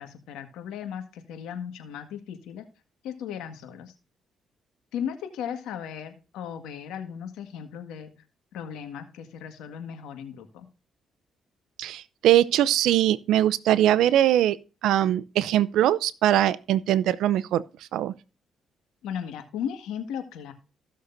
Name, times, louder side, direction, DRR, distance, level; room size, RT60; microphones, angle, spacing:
voice 1, 0.0-2.6 3.0-3.9 4.9-8.1 8.5-10.7 19.0-20.5, left 8 dB, 90° left, 1.8 m, -36 dB
voice 2, 11.8-14.6 14.8-17.6 17.9-18.1, right 12 dB, 85° right, 0.6 m, -21 dB
16.0 x 6.5 x 2.7 m
cardioid pair, 90°, 0 cm